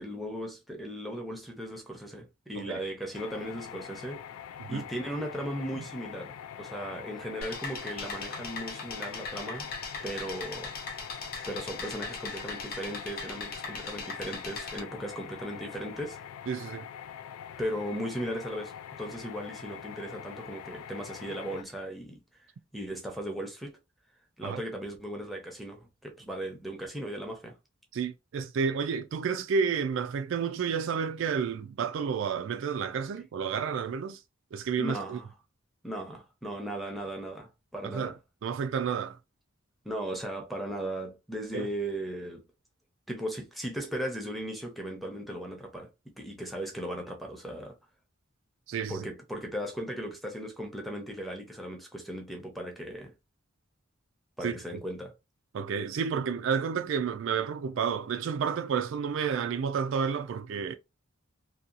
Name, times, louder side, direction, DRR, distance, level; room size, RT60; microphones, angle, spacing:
voice 1, 0.0-4.2 4.7-9.7 10.0-10.7 11.5-16.2 17.6-18.7 19.0-22.2 22.7-23.8 24.4-27.5 34.8-35.3 35.8-38.2 39.8-42.4 43.1-45.9 46.2-47.8 48.9-53.1 54.4-55.1, equal, ahead, 0.6 m, -37 dB
sound 1, 3.1-21.6, left 9 dB, 90° left, 0.3 m, -44 dB
sound 2, 7.4-14.8, left 4 dB, 45° left, 0.8 m, -39 dB
voice 2, 16.5-16.9 24.4-24.6 27.9-34.2 34.5-35.2 37.8-38.1 38.4-39.2 41.5-41.7 48.7-49.0 54.4-54.5 55.5-60.8, right 6 dB, 65° right, 0.3 m, -30 dB
2.7 x 2.3 x 2.4 m
head